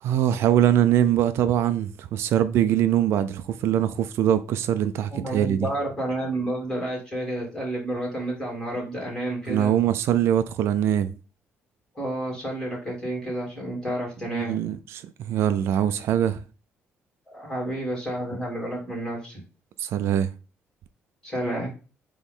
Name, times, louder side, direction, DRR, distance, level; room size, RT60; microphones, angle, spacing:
voice 1, 0.0-5.7 9.5-11.1 14.3-16.4 19.8-20.3, right 10 dB, 65° right, 0.4 m, -23 dB
voice 2, 5.1-9.7 11.9-14.6 17.3-19.4 21.2-21.7, right 1 dB, 10° left, 3.2 m, -30 dB
8.1 x 3.1 x 3.8 m
cardioid pair, 165°, 5 cm